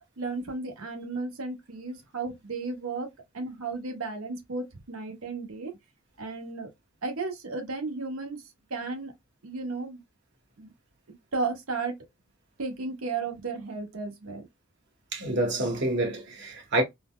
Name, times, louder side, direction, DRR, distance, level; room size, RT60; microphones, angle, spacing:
voice 1, 0.2-3.1 3.3-5.7 6.2-6.7 7.0-8.4 8.7-9.1 9.4-10.0 10.6-10.7 11.3-11.9 12.6-14.5, right 3 dB, 70° right, 0.9 m, -34 dB
voice 2, 15.1-16.8, right 1 dB, 55° right, 1.2 m, -27 dB
3.8 x 2.1 x 2.3 m
head